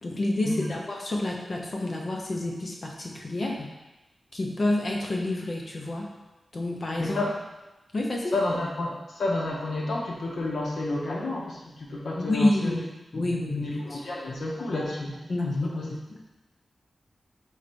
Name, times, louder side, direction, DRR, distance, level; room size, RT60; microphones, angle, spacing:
voice 1, 0.0-3.7 4.3-6.1 6.5-7.2 7.9-8.3 12.2-12.8 13.1-14.0 14.7-14.9 15.3-16.3, left 1 dB, 45° left, -1 dB, 0.6 m, -28 dB
voice 2, 7.0-7.3 8.3-12.7 13.1-15.1 15.6-15.9, left 2 dB, 80° left, -3 dB, 0.8 m, -31 dB
4.8 x 2.6 x 4.3 m, 1.1 s
wide cardioid pair, 150°, 0 cm